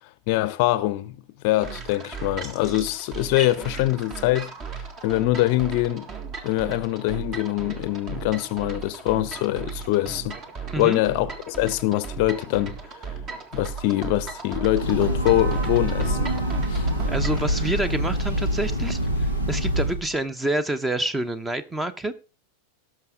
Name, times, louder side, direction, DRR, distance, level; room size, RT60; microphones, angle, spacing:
voice 1, 0.3-1.2 1.4-6.1 6.4-10.4 10.8-12.8 13.0-13.2 13.5-16.4 16.7-16.9, left 16 dB, 45° left, 0.7 m, -24 dB
sound 1, 1.6-17.5, right 5 dB, 30° right, 1.7 m, -36 dB
Breathing / Train, 14.5-20.1, equal, 80° right, 2.8 m, -25 dB
voice 2, 17.1-22.1, right 2 dB, 10° right, 0.9 m, -28 dB
18.0 x 6.5 x 3.7 m
figure-of-eight pair, 90°, 0 cm